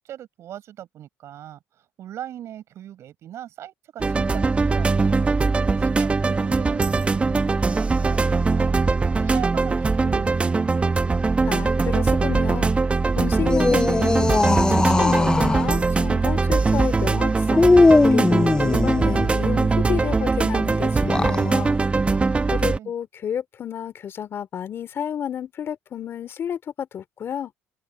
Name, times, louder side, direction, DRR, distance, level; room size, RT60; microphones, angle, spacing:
voice 1, 0.0-5.3 5.8-8.8 9.2-10.9 22.1-22.9, right 11 dB, 60° right, 7.3 m, -39 dB
sound 1, 4.0-22.8, right 4 dB, 20° right, 1.0 m, -21 dB
voice 2, 11.5-12.7 13.2-21.8 22.5-27.5, left 9 dB, 50° left, 2.8 m, -31 dB
sound 2, 13.4-15.7 17.5-19.3 20.9-21.5, left 3 dB, 15° left, 0.6 m, -19 dB
supercardioid pair, 90°, 5 cm